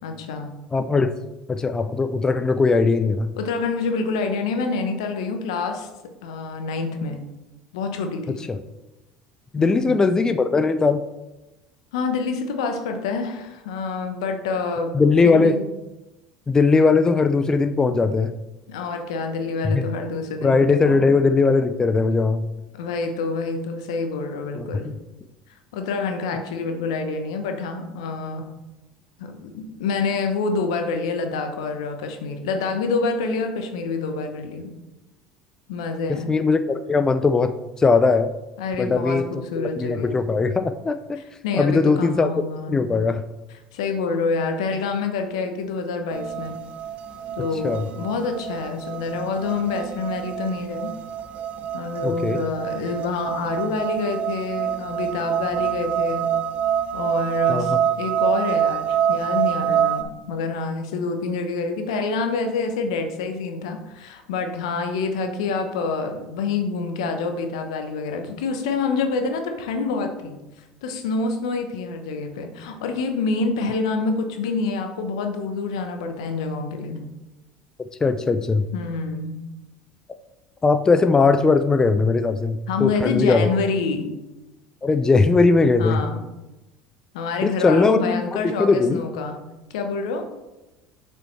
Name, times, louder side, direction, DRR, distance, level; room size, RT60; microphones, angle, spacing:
voice 1, 0.0-0.6 3.4-5.9 6.2-7.2 7.7-8.4 9.6-10.0 11.9-15.0 15.2-15.6 18.7-21.1 22.7-24.9 25.7-28.5 29.2-34.7 35.7-36.3 38.6-40.2 41.4-42.9 43.7-46.6 47.4-50.9 51.7-56.3 56.9-70.4 70.8-77.1 78.7-79.4 82.7-84.1 85.8-86.3 87.1-89.4 89.7-90.3, left 4 dB, 75° left, 6 dB, 0.9 m, -27 dB
voice 2, 0.7-1.1 1.5-3.3 8.3-8.6 9.5-11.0 14.9-15.6 16.5-18.3 19.6-19.8 20.4-22.5 24.5-24.9 36.1-38.3 38.8-39.2 39.6-41.2 41.5-42.3 42.7-43.2 47.6-47.8 52.0-52.4 57.5-57.8 78.0-78.7 80.6-83.5 84.8-86.0 87.4-89.0, left 4 dB, 20° left, 10 dB, 0.4 m, -19 dB
sound 1, 46.1-60.0, right 9 dB, 50° right, 0.6 m, -26 dB
6.9 x 5.5 x 3.2 m, 1.0 s
hypercardioid pair, 75°, 3 cm